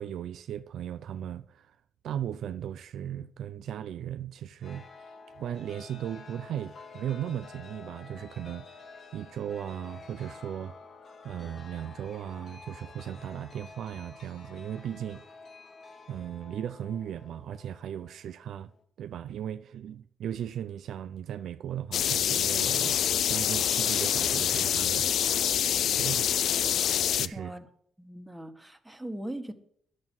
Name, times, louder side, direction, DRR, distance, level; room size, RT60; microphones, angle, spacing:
voice 1, 0.0-1.8 2.0-4.9 5.4-8.8 9.1-10.7 11.2-15.2 16.1-18.7 19.0-25.2 25.5-25.7 26.0-26.3 27.1-27.5, right 10 dB, 70° right, 0.5 m, -37 dB
Chime, 4.6-18.8, left 4 dB, 50° left, 2.6 m, -50 dB
sound 1, 21.9-27.3, left 9 dB, 70° left, 0.5 m, -26 dB
voice 2, 27.3-27.7 28.0-29.5, right 1 dB, 5° right, 1.6 m, -39 dB
10.5 x 7.5 x 9.4 m
cardioid pair, 90°, 0 cm